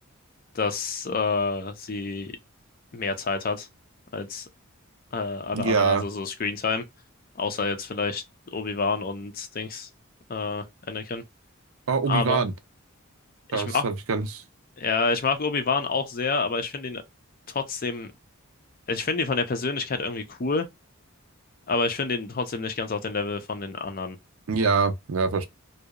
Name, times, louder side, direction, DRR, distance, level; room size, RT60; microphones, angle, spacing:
voice 1, 0.5-2.3 2.9-3.7 4.1-4.5 5.1-6.8 7.4-8.2 8.5-9.9 10.3-11.2 12.1-12.4 13.5-13.8 14.8-17.0 17.5-18.1 18.9-20.7 21.7-24.2, left 4 dB, 45° left, 0.5 m, -28 dB
voice 2, 5.5-6.0 11.9-12.5 13.5-14.4 24.5-25.5, right 5 dB, 75° right, 0.5 m, -24 dB
2.7 x 2.0 x 2.3 m
head